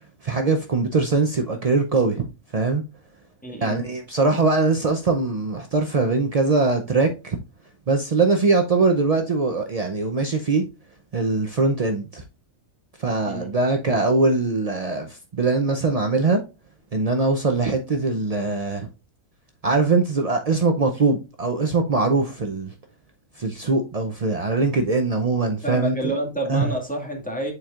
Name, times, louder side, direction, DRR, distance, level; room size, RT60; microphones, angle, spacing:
voice 1, 0.2-2.3 2.5-2.8 3.6-7.4 7.9-10.7 11.1-12.2 13.0-16.4 16.9-18.9 19.6-22.7 23.4-26.0 26.5-26.7, right 3 dB, 50° right, 0.4 m, -22 dB
voice 2, 3.4-3.9 13.3-13.5 13.9-14.1 25.6-27.5, right 1 dB, 5° left, 1.8 m, -29 dB
9.7 x 4.5 x 2.4 m
omnidirectional pair, 1.6 m